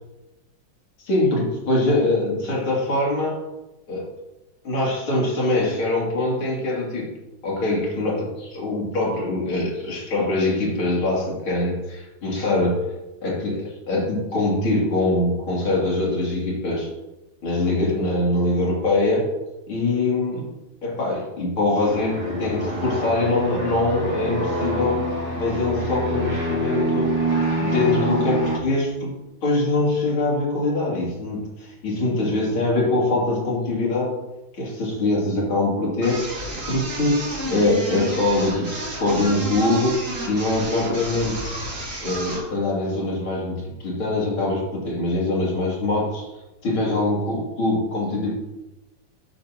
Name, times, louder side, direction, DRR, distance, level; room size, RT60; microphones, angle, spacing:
voice 1, 1.0-3.4 3.9-4.1 4.6-7.1 7.4-12.8 13.2-16.9 17.4-19.3 19.7-20.5 20.8-27.1 27.6-29.1 29.4-34.2 34.6-36.2 36.7-40.0 40.3-41.5 42.0-46.3 46.6-48.4, left 2 dB, 85° left, -4 dB, 3.8 m, -23 dB
sound 1, 21.8-28.6, right 1 dB, 15° right, 2.5 m, -26 dB
sound 2, 36.0-42.5, right 1 dB, 40° right, 2.5 m, -31 dB
13.0 x 9.3 x 3.0 m, 1.0 s
omnidirectional pair, 2.3 m